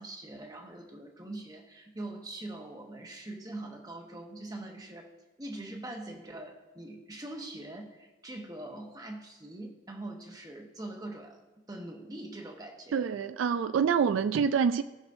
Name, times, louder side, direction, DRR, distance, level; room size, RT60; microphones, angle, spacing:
voice 1, 0.0-5.1 5.4-11.4 11.7-13.1, right 1 dB, 20° right, 1.0 m, -43 dB
voice 2, 12.9-14.8, right 6 dB, 75° right, 0.3 m, -26 dB
18.0 x 6.1 x 2.6 m
head